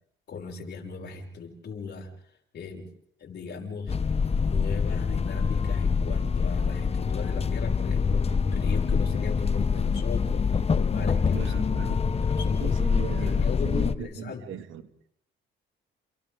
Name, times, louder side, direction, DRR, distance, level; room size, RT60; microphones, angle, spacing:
voice 1, 0.3-2.1 2.5-2.9 3.2-4.0 4.4-11.5 12.1-12.8 13.2-14.6, left 5 dB, 60° left, 5.8 m, -37 dB
sound 1, 3.9-14.0, left 5 dB, 30° left, 0.9 m, -25 dB
voice 2, 11.3-12.0 12.6-14.8, right 10 dB, 85° right, 1.9 m, -38 dB
29.5 x 28.5 x 3.6 m
cardioid pair, 90°, 20 cm